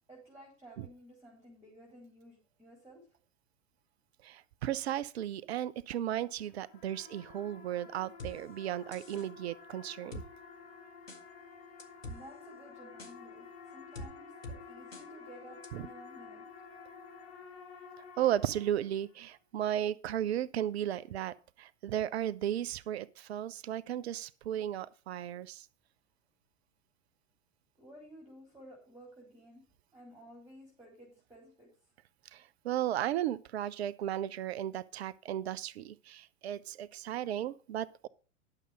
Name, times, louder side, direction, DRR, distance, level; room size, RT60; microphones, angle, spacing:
voice 1, 0.1-3.1 12.1-16.4 27.8-29.6 29.9-31.7, equal, 5° right, 3.9 m, -54 dB
voice 2, 4.2-10.2 15.7-15.8 18.2-25.7 32.3-38.1, right 11 dB, 55° right, 0.6 m, -35 dB
sound 1, 6.4-19.1, left 5 dB, 50° left, 1.9 m, -51 dB
sound 2, 8.2-8.3 8.9-9.3 10.1-10.3 11.1-11.2 11.8-12.2 13.0-13.1 13.9-14.1 14.4-14.6 14.9-15.0 15.6-15.7, left 1 dB, 85° left, 1.7 m, -43 dB
11.0 x 6.6 x 4.9 m
figure-of-eight pair, 90°, 38 cm